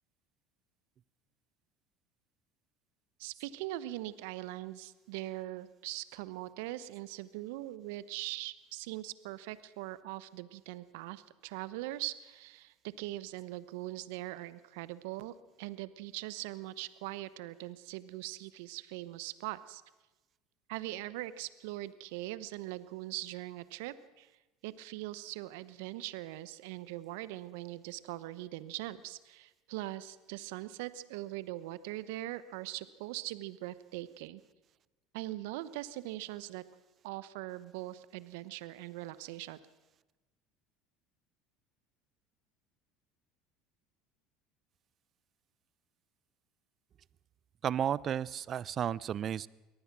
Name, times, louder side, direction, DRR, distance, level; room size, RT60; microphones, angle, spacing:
voice 1, 3.2-19.8 20.7-24.3 24.6-34.4 35.1-36.6 37.0-39.6, right 16 dB, 70° right, 16 dB, 0.9 m, -41 dB
voice 2, 47.6-49.5, right 9 dB, 45° right, 22 dB, 0.6 m, -33 dB
23.0 x 18.5 x 6.1 m, 1.1 s
hypercardioid pair, 75°, 0 cm